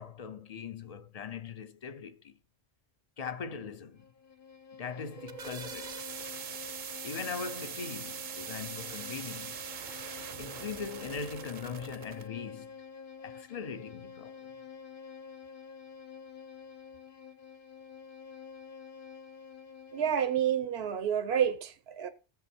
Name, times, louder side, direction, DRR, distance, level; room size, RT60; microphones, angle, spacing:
voice 1, 0.0-2.4 3.2-4.1 4.8-6.1 7.0-9.6 10.4-12.7 13.2-14.4, left 6 dB, 40° left, 0.7 m, -40 dB
Bowed string instrument, 3.9-20.5, left 6 dB, 60° left, 1.0 m, -48 dB
sound 1, 5.0-12.3, right 7 dB, 55° right, 0.7 m, -42 dB
voice 2, 19.9-22.1, right 9 dB, 85° right, 1.1 m, -29 dB
15.5 x 6.9 x 4.4 m
omnidirectional pair, 1.1 m